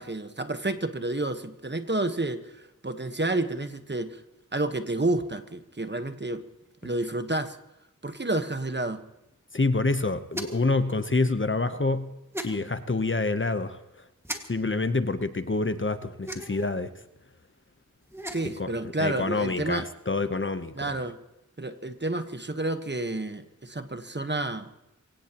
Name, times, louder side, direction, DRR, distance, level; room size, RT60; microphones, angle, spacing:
voice 1, 0.0-4.2 4.5-6.4 6.8-7.6 8.0-9.0 18.3-19.9 20.7-21.2 21.6-24.7, right 2 dB, 35° right, 9 dB, 1.2 m, -30 dB
voice 2, 9.5-12.1 12.4-14.1 14.5-16.9 18.4-18.7 19.0-20.9, left 3 dB, 40° left, 11 dB, 0.9 m, -27 dB
sound 1, 10.3-10.7 12.3-12.5 14.2-14.4 16.2-16.7 18.0-18.6, right 1 dB, 10° right, 1.9 m, -36 dB
24.5 x 17.0 x 3.0 m, 0.93 s
wide cardioid pair, 50°, 32 cm